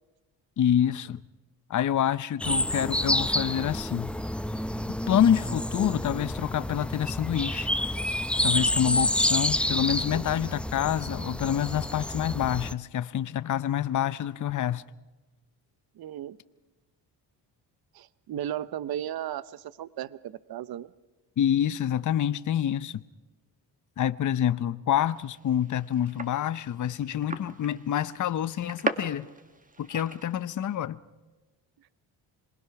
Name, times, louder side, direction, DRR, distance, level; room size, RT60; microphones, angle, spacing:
voice 1, 0.6-1.2 1.7-4.1 5.1-7.7 8.4-14.8 21.4-23.0 24.0-29.3 29.8-31.0, left 10 dB, 45° left, 0.7 m, -27 dB
sound 1, 2.4-12.7, left 1 dB, 5° left, 0.6 m, -29 dB
voice 2, 10.1-10.5 16.0-16.4 17.9-20.9, right 11 dB, 55° right, 0.8 m, -36 dB
sound 2, 25.1-30.8, right 3 dB, 20° right, 1.5 m, -38 dB
27.0 x 20.0 x 5.9 m
cardioid pair, 80°, 43 cm